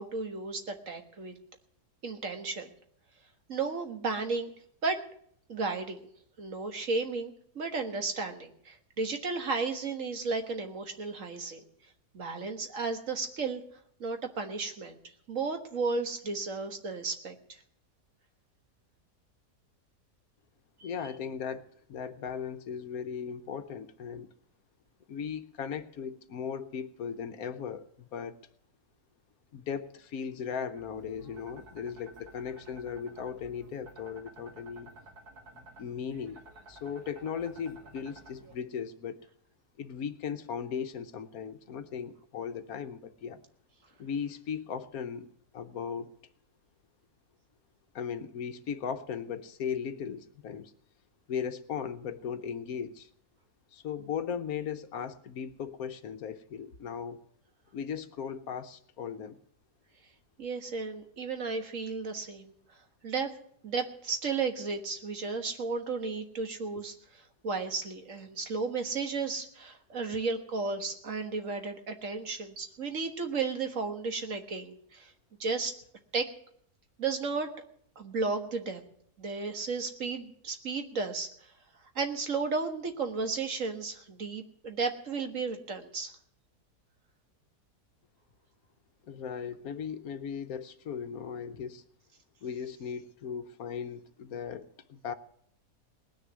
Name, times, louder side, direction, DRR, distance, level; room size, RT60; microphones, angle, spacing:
voice 1, 0.0-1.4 2.0-2.7 3.5-4.5 4.8-5.0 5.5-6.0 6.4-11.6 12.1-13.6 14.0-15.0 15.3-17.6 20.8-20.9 60.4-62.5 63.0-63.3 63.6-75.1 75.4-75.8 76.1-76.3 77.0-77.5 77.9-78.8 79.2-81.3 81.9-86.1, right 4 dB, 55° right, 6 dB, 1.8 m, -33 dB
voice 2, 20.8-24.3 25.1-28.4 29.5-34.9 35.5-36.4 36.7-39.3 39.8-43.4 44.0-45.3 45.5-46.1 47.9-50.7 51.3-53.1 53.7-57.2 57.7-59.4 89.0-91.8 92.4-95.1, left 7 dB, 70° left, 10 dB, 1.3 m, -37 dB
sound 1, 30.7-38.5, right 2 dB, 75° right, 2.6 m, -53 dB
19.5 x 6.6 x 9.4 m, 0.66 s
omnidirectional pair, 1.7 m